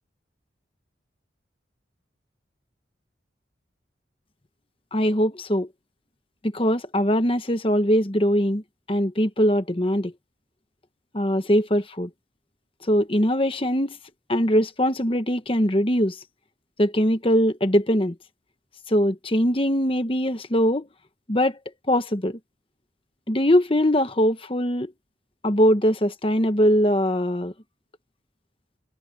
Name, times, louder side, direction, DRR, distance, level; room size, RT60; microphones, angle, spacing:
voice 1, 4.9-5.7 6.5-8.6 8.9-10.1 11.1-12.1 12.9-14.0 14.3-16.2 16.8-18.1 18.9-20.9 21.3-21.5 21.9-22.4 23.3-24.9 25.4-27.5, equal, 30° left, 1.3 m, -21 dB
head